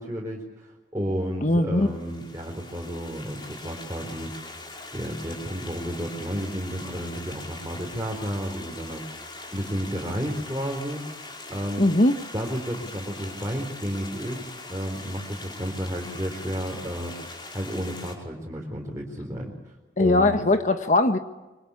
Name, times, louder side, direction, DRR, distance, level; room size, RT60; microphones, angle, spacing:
voice 1, 0.0-4.6 4.9-11.0 11.5-11.9 12.3-19.7 20.0-20.4, equal, 20° right, -1 dB, 4.2 m, -32 dB
voice 2, 1.4-1.9 11.8-12.2 20.0-21.2, left 2 dB, 45° left, 7 dB, 1.3 m, -20 dB
Stream, 1.8-18.1, left 2 dB, 25° left, 5.3 m, -42 dB
27.0 x 24.5 x 8.6 m, 1.1 s
head